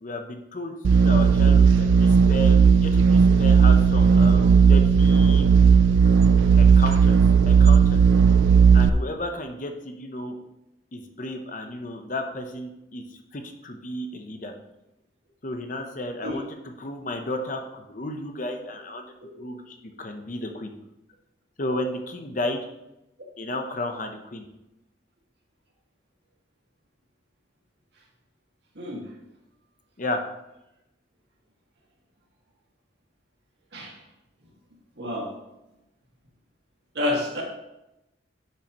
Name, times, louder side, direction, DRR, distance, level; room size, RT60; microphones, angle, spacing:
voice 1, 0.0-5.5 6.6-7.2 7.5-8.0 8.7-10.4 10.9-13.0 13.3-14.5 15.4-19.0 19.4-20.7 21.6-22.6 23.4-24.5 30.0-30.2, left 1 dB, 40° left, 5 dB, 0.8 m, -33 dB
sound 1, 0.8-8.9, right 6 dB, 80° right, 0.4 m, -16 dB
voice 2, 35.0-35.3 37.0-37.4, left 2 dB, 60° right, -2 dB, 2.0 m, -28 dB
10.5 x 5.9 x 3.0 m, 0.91 s
head